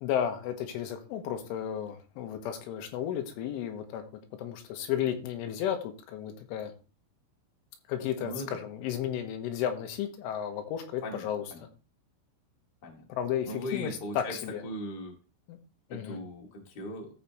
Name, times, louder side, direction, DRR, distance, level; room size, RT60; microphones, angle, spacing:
voice 1, 0.0-4.0 4.4-6.7 7.9-11.5 13.2-14.6 15.5-15.6 15.9-16.2, left 9 dB, 85° left, 5 dB, 3.6 m, -33 dB
voice 2, 11.0-11.6 12.8-13.1 13.4-14.3 14.6-15.1 15.9-17.1, left 1 dB, 40° left, 0 dB, 1.6 m, -39 dB
14.0 x 5.7 x 3.1 m, 0.34 s
omnidirectional pair, 5.5 m